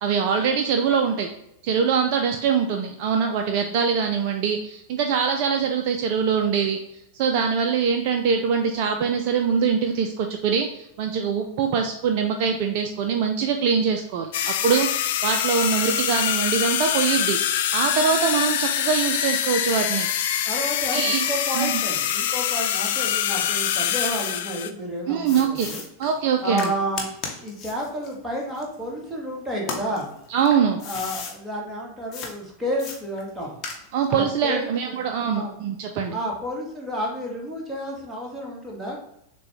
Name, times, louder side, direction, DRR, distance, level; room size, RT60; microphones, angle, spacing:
voice 1, 0.0-1.3 1.6-14.9 15.2-17.4 17.7-20.1 20.9-21.2 21.5-21.8 25.1-25.7 26.0-26.7 30.3-30.9 33.9-36.2, right 6 dB, 45° right, 4 dB, 0.4 m, -23 dB
sound 1, 14.3-24.7, left 10 dB, 55° left, 0.3 m, -24 dB
voice 2, 20.4-25.8 26.4-27.0 27.4-30.1 30.8-33.6 34.1-35.5 36.1-39.0, equal, 5° right, -3 dB, 1.4 m, -31 dB
sound 2, 22.9-24.4 25.3-29.2 29.6-31.4 32.1-32.3 32.8-34.1, left 4 dB, 30° left, 0.9 m, -36 dB
6.7 x 2.2 x 3.0 m, 0.79 s
figure-of-eight pair, 90°, 0 cm